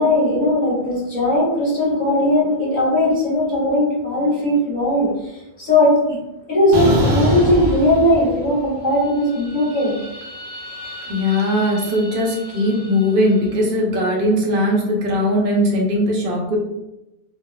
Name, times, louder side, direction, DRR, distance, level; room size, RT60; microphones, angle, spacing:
voice 1, 0.0-5.3 5.6-6.2 6.5-10.0, left 1 dB, 45° left, -6 dB, 1.2 m, -18 dB
sound 1, 6.7-8.7 9.0-13.3, equal, 90° right, 1.0 m, -26 dB
voice 2, 11.1-16.6, left 1 dB, 60° right, -1 dB, 0.9 m, -19 dB
3.6 x 2.3 x 2.2 m, 0.96 s
omnidirectional pair, 1.1 m